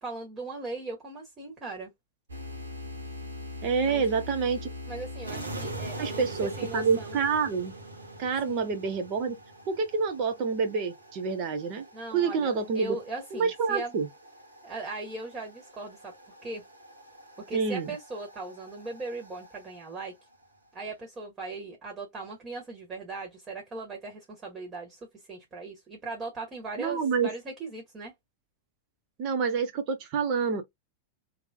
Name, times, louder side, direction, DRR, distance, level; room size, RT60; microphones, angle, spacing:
voice 1, 0.0-1.9 3.8-4.0 4.9-7.2 8.4-8.7 11.9-13.9 14.6-16.1 16.4-16.6 17.5-20.1 20.7-28.1, right 3 dB, 25° right, 2.1 m, -39 dB
sound 1, 2.3-20.1, equal, 75° right, 1.5 m, -43 dB
voice 2, 3.6-4.6 6.0-7.7 8.2-9.4 9.7-11.8 12.1-13.0 13.3-14.1 17.5-17.9 26.8-27.3 29.2-30.6, right 5 dB, 40° right, 1.3 m, -27 dB
3.5 x 3.2 x 2.6 m
figure-of-eight pair, 90°, 0 cm